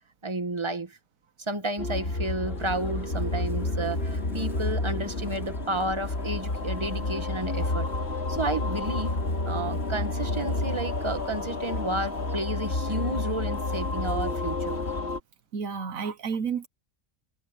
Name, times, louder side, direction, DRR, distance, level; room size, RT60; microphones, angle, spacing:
voice 1, 0.2-1.0 1.5-7.9 8.3-9.2 9.5-14.8, right 2 dB, 20° right, 1.8 m, -31 dB
sound 1, 1.8-15.2, left 2 dB, 50° left, 2.6 m, -30 dB
Chirp tweet, 2.4-15.0, equal, ahead, 1.6 m, -47 dB
voice 2, 15.5-16.7, right 6 dB, 75° right, 1.4 m, -31 dB
omnidirectional pair, 1.4 m